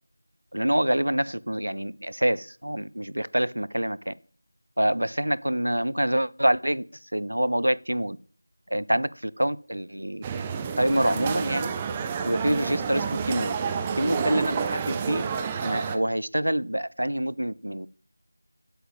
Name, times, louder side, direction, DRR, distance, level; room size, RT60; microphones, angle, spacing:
voice 1, 0.5-4.1 4.8-6.8 7.1-8.2 8.7-10.2 10.8-11.7 12.2-13.5 14.0-15.2 15.6-17.9, right 1 dB, 90° right, 19 dB, 0.5 m, -26 dB
sound 1, 10.2-16.0, right 6 dB, 10° right, 0.4 m, -29 dB
8.3 x 7.9 x 4.8 m, 0.44 s
figure-of-eight pair, 170°, 0 cm